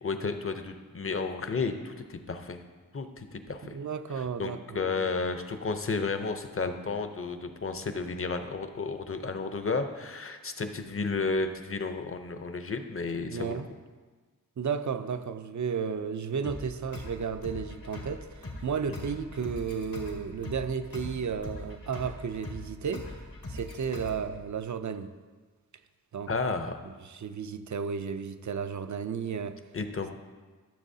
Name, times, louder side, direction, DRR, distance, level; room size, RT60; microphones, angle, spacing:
voice 1, 0.0-2.6 2.9-3.8 4.4-13.6 18.9-19.1 26.3-26.8 29.7-30.1, left 4 dB, 40° left, 0.7 m, -32 dB
voice 2, 3.6-5.1 13.3-13.7 14.6-23.1 23.5-25.1 26.1-26.3 26.8-29.6, right 6 dB, 60° right, 0.5 m, -33 dB
sound 1, 16.4-24.4, left 1 dB, 85° left, 2.0 m, -42 dB
13.5 x 7.3 x 2.8 m
wide cardioid pair, 100°, 34 cm